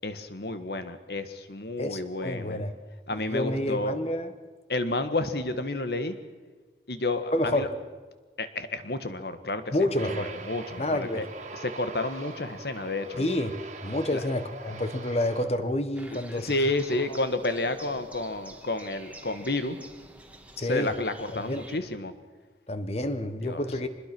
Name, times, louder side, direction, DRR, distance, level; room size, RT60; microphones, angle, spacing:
voice 1, 0.0-2.6 3.1-4.0 4.7-6.2 6.9-7.7 8.4-9.8 10.1-11.3 11.5-13.2 14.1-14.2 16.1-19.8 20.6-22.1 23.4-23.6, left 2 dB, 65° left, 10 dB, 1.7 m, -31 dB
voice 2, 1.8-2.7 3.1-4.3 7.3-7.7 9.7-10.3 10.8-11.3 13.2-16.5 20.6-20.9 21.5-21.6 22.7-23.9, left 1 dB, 35° left, 10 dB, 1.4 m, -29 dB
Aircraft, 10.0-15.5, right 3 dB, 40° right, 2.2 m, -42 dB
sound 1, 15.9-21.8, right 2 dB, 10° right, 1.8 m, -48 dB
25.0 x 21.0 x 6.2 m, 1.3 s
head